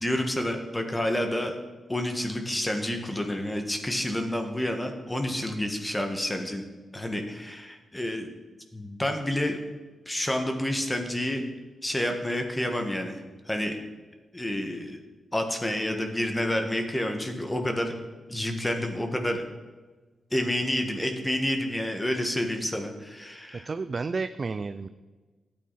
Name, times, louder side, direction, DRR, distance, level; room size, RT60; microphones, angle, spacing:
voice 1, 0.0-1.6 1.9-6.7 6.9-8.3 8.7-9.6 10.1-11.4 11.8-13.2 13.5-13.8 14.3-15.0 15.3-17.9 18.3-19.4 20.3-23.7, left 1 dB, 15° left, 4 dB, 1.8 m, -29 dB
voice 2, 23.7-24.9, right 4 dB, 50° right, 11 dB, 0.4 m, -31 dB
12.5 x 8.7 x 4.2 m, 1.3 s
supercardioid pair, 50°, 0 cm